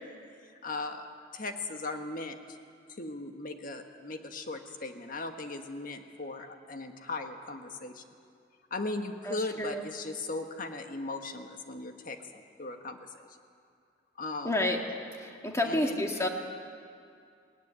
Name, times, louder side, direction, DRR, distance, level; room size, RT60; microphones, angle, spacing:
voice 1, 0.6-1.1 1.3-2.6 3.0-8.0 8.7-12.2 12.6-13.0 14.2-14.7 15.6-16.0, left 2 dB, 50° left, 5 dB, 1.5 m, -38 dB
voice 2, 9.3-9.8 14.4-14.8 15.4-16.3, left 1 dB, 15° left, 2 dB, 2.0 m, -29 dB
19.5 x 16.5 x 9.7 m, 2.4 s
head